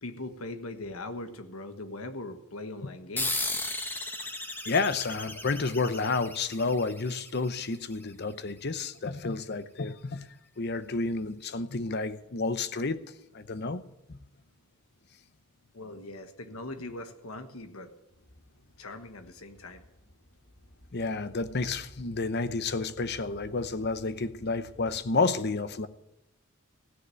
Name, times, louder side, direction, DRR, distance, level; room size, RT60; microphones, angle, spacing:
voice 1, 0.0-3.5 15.7-17.9 18.8-19.8, left 2 dB, 85° left, 1.3 m, -40 dB
sound 1, 3.2-8.1, left 2 dB, 10° left, 1.1 m, -36 dB
voice 2, 4.6-10.3 10.6-13.0 13.3-13.8 14.1-14.2 20.9-25.9, left 3 dB, 50° left, 0.8 m, -30 dB
sound 2, 18.1-25.1, equal, 65° left, 2.3 m, -55 dB
16.0 x 6.6 x 9.0 m
head